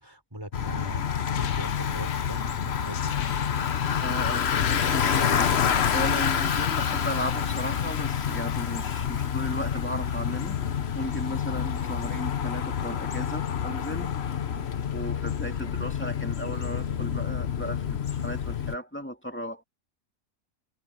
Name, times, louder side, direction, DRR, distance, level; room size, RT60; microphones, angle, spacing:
voice 1, 0.0-3.2, right 1 dB, 15° right, 5.5 m, -41 dB
Bicycle, 0.5-18.8, left 8 dB, 55° left, 1.2 m, -28 dB
sound 1, 1.1-4.0 4.3-5.7, left 9 dB, 85° left, 1.3 m, -38 dB
voice 2, 4.0-10.6 10.9-14.4 14.9-19.6, equal, 10° left, 2.2 m, -35 dB
omnidirectional pair, 1.4 m